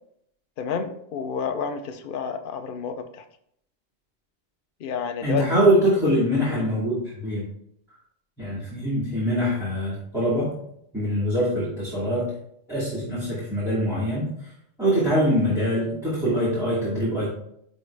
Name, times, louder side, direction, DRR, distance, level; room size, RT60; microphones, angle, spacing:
voice 1, 0.6-3.0 4.8-5.4 6.5-6.7, left 6 dB, 50° left, 7 dB, 0.7 m, -30 dB
voice 2, 5.2-7.4 8.4-10.5 10.9-12.3 12.7-14.3 14.8-17.3, equal, ahead, -11 dB, 2.6 m, -23 dB
11.0 x 3.7 x 3.3 m, 0.73 s
omnidirectional pair, 1.3 m